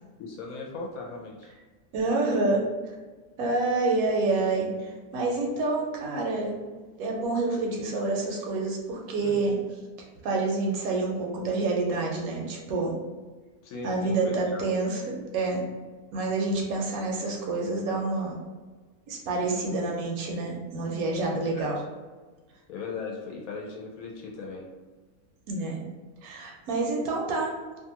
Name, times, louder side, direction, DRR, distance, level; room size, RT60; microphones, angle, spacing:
voice 1, 0.2-1.5 9.2-9.4 13.6-14.6 21.5-21.6 22.7-24.7, left 4 dB, 70° left, -1 dB, 0.9 m, -38 dB
voice 2, 1.9-2.7 3.4-6.6 7.0-9.6 10.2-12.9 13.8-15.6 16.1-18.4 19.1-21.8 25.5-25.8 26.2-27.5, right 3 dB, 75° right, -1 dB, 1.0 m, -28 dB
2.6 x 2.3 x 2.8 m, 1.3 s
omnidirectional pair, 1.7 m